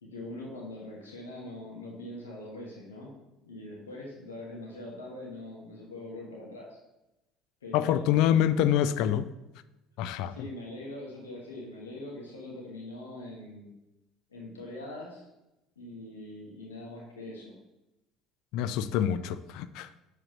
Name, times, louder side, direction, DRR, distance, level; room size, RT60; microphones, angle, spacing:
voice 1, 0.0-3.1 3.4-6.8 7.6-8.3 10.3-13.7 14.3-15.3 15.7-17.6, left 1 dB, 75° left, -2 dB, 1.5 m, -42 dB
voice 2, 7.7-9.3 10.0-10.3 18.5-19.9, left 10 dB, 60° left, 13 dB, 0.4 m, -26 dB
7.9 x 7.4 x 3.0 m, 0.93 s
figure-of-eight pair, 60°, 0 cm